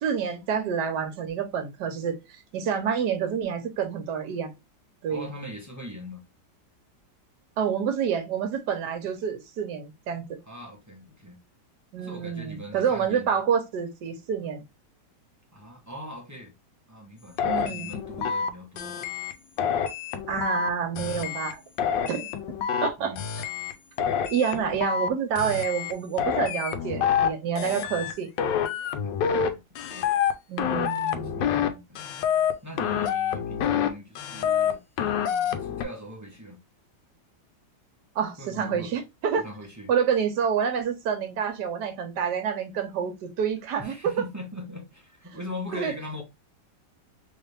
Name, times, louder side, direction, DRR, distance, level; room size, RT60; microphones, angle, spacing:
voice 1, 0.0-4.5 5.0-5.3 7.6-10.4 11.9-14.6 17.4-17.9 20.3-21.6 22.1-22.3 22.8-23.1 24.3-28.3 30.5-31.3 38.1-39.4 39.9-43.9 45.7-45.9, right 7 dB, 70° right, 1.4 m, -28 dB
voice 2, 5.1-6.2 10.4-11.4 12.0-13.4 15.5-16.5 16.9-19.0 23.0-23.3 29.0-30.1 31.1-32.0 32.6-36.6 38.4-38.9 39.4-39.9 43.8-46.2, left 1 dB, 15° right, 0.6 m, -41 dB
sound 1, 17.4-18.5 18.8-19.3 19.6-20.7 21.0-21.5 21.8-22.9 23.2-23.7 24.0-25.1 25.4-25.9 26.2-27.3 27.6-28.1 28.4-29.5 29.8-30.3 30.6-31.7 32.0-32.5 32.8-33.9 34.2-34.7 35.0-35.8, left 8 dB, 75° left, 1.3 m, -27 dB
3.3 x 3.2 x 3.2 m
omnidirectional pair, 2.0 m